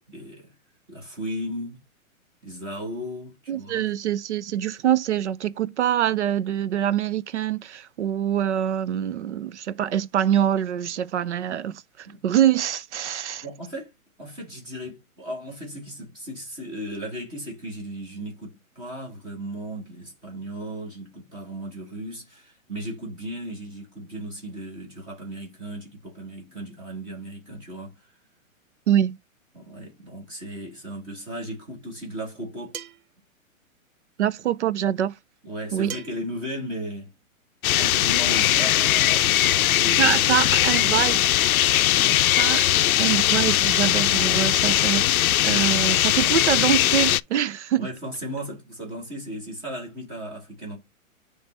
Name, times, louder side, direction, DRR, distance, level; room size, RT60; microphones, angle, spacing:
voice 1, 0.1-0.5 0.9-1.8 2.4-3.9 12.0-12.2 13.4-13.9 14.2-28.1 29.5-32.8 35.4-37.1 37.8-41.0 41.9-42.2 47.8-50.8, equal, 10° right, 1.4 m, -36 dB
voice 2, 3.5-13.4 28.9-29.2 34.2-35.1 35.7-35.9 40.0-41.2 42.4-47.9, right 10 dB, 55° right, 0.5 m, -25 dB
sound 1, 32.7-33.1 35.9-36.3, right 9 dB, 80° right, 1.0 m, -38 dB
sound 2, 37.6-47.2, left 13 dB, 85° left, 0.5 m, -20 dB
7.0 x 3.4 x 4.2 m
hypercardioid pair, 175°, 41 cm